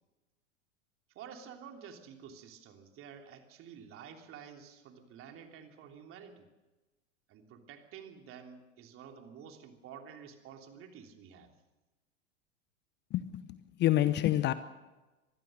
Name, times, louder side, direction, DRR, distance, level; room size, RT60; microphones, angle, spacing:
voice 1, 1.1-6.5 7.3-11.5, right 7 dB, 35° right, 3.3 m, -50 dB
voice 2, 13.1-14.5, left 13 dB, 30° left, 0.9 m, -28 dB
25.0 x 20.5 x 6.6 m
figure-of-eight pair, 90°, 38 cm